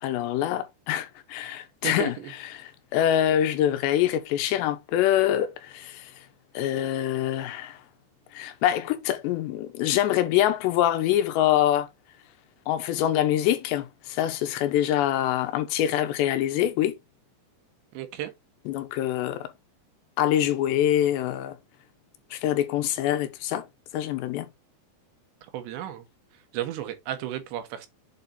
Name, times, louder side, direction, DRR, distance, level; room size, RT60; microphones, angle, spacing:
voice 1, 0.0-2.2 2.5-6.2 6.5-7.8 8.3-11.9 12.7-17.0 18.7-19.5 20.2-21.6 22.3-23.7 23.9-24.5, left 11 dB, 90° left, 3.2 m, -25 dB
voice 2, 1.8-2.3 17.9-18.3 25.5-26.1 26.5-27.9, right 12 dB, 90° right, 3.4 m, -33 dB
7.7 x 4.2 x 3.8 m
omnidirectional pair, 4.9 m